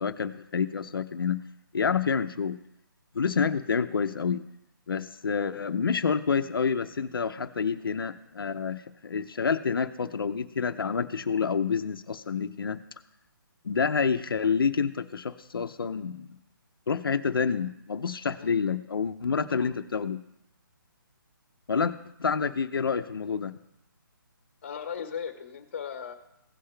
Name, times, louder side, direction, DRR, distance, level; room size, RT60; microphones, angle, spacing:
voice 1, 0.0-1.4 1.7-2.6 3.1-4.4 4.9-12.8 13.6-16.3 16.9-20.2 21.7-21.9 22.2-23.5, left 6 dB, 75° left, 8 dB, 0.7 m, -28 dB
voice 2, 24.6-26.1, left 7 dB, 30° left, 7 dB, 1.2 m, -37 dB
16.5 x 5.7 x 3.3 m, 0.80 s
hypercardioid pair, 175°, 12 cm